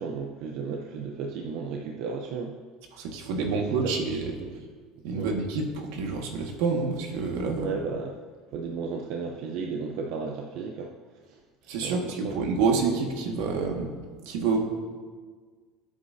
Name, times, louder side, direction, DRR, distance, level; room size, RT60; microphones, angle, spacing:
voice 1, 0.0-2.6 3.4-3.9 5.1-5.4 7.5-8.1 8.5-10.9 11.3-11.4 11.8-12.4, right 5 dB, 60° right, 1 dB, 0.8 m, -34 dB
voice 2, 2.9-4.3 5.0-7.7 11.7-13.9 14.3-14.7, right 4 dB, 80° right, 1 dB, 1.9 m, -28 dB
19.0 x 8.3 x 2.8 m, 1.5 s
cardioid pair, 155°, 0 cm